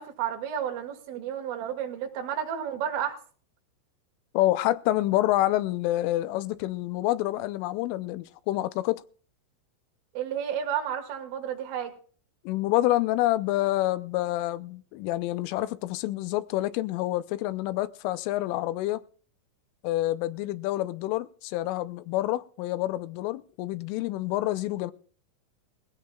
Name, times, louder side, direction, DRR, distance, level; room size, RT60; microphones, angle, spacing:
voice 1, 0.0-3.2 10.2-11.9, right 9 dB, 75° right, 4.4 m, -31 dB
voice 2, 4.3-9.0 12.4-19.0 19.8-24.9, left 16 dB, 80° left, 3.2 m, -27 dB
20.0 x 16.5 x 2.4 m
omnidirectional pair, 5.8 m